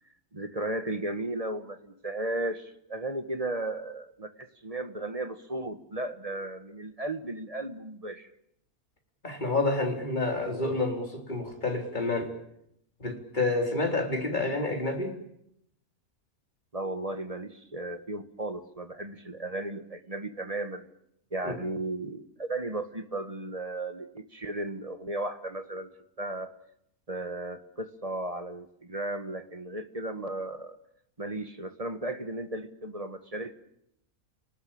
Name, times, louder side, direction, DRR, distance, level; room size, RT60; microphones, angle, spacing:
voice 1, 0.3-8.3 16.7-20.9 21.3-25.9 26.2-26.5 27.1-30.8 31.2-33.6, right 2 dB, 25° right, 9 dB, 1.5 m, -35 dB
voice 2, 9.2-12.3 13.0-15.1 21.4-21.6, left 2 dB, 30° left, 2 dB, 4.2 m, -29 dB
30.0 x 19.0 x 8.8 m, 0.77 s
omnidirectional pair, 1.6 m